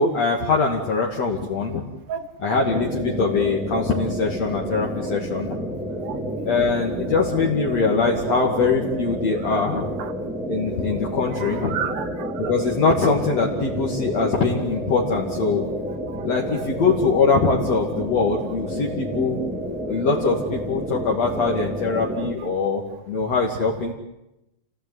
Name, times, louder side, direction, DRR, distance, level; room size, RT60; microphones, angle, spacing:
voice 1, 0.0-1.8 2.4-5.6 6.5-9.9 10.5-11.7 12.4-15.7 16.3-19.5 19.9-23.9, left 4 dB, 55° left, -1 dB, 3.5 m, -22 dB
voice 2, 2.1-2.5 6.0-6.5 8.3-8.5 9.5-10.1 11.3-12.5 15.9-16.3, right 8 dB, 80° right, 11 dB, 3.0 m, -33 dB
sound 1, 2.6-22.4, equal, ahead, 2.7 m, -30 dB
29.0 x 18.5 x 9.6 m, 0.90 s
omnidirectional pair, 3.7 m